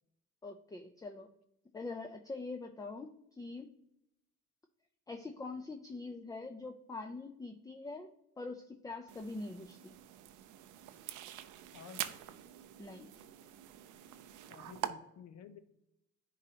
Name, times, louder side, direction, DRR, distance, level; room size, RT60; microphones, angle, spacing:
voice 1, 0.4-1.3 1.7-3.8 5.1-10.0 12.8-13.1, left 3 dB, 10° left, 6 dB, 0.4 m, -44 dB
sound 1, 9.1-14.9, right 12 dB, 90° right, 0.5 m, -45 dB
voice 2, 11.7-12.2 14.5-15.6, left 7 dB, 60° left, 10 dB, 0.7 m, -52 dB
10.0 x 4.0 x 2.8 m, 0.84 s
cardioid pair, 90°, 30 cm